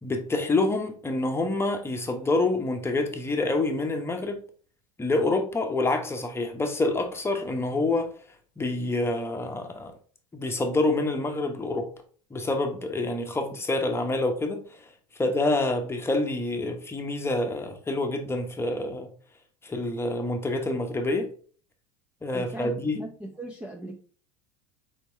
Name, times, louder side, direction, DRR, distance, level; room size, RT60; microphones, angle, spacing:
voice 1, 0.0-4.4 5.0-8.1 8.6-9.9 10.3-11.9 12.3-14.8 15.2-19.1 19.6-21.3 22.2-23.0, left 2 dB, 15° left, 1.0 m, -27 dB
voice 2, 22.3-24.0, right 1 dB, 5° right, 0.6 m, -38 dB
4.5 x 4.3 x 2.7 m
hypercardioid pair, 95°, 18 cm